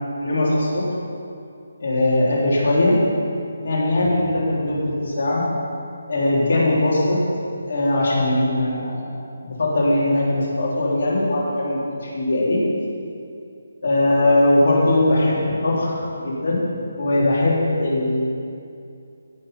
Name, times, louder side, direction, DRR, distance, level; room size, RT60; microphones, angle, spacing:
voice 1, 0.2-0.9 1.8-3.0 3.6-5.4 6.1-7.2 7.7-9.1 9.4-12.6 13.8-16.6 17.0-18.3, left 1 dB, 60° left, -5 dB, 3.4 m, -20 dB
17.0 x 6.1 x 5.6 m, 2.5 s
figure-of-eight pair, 160°, 0 cm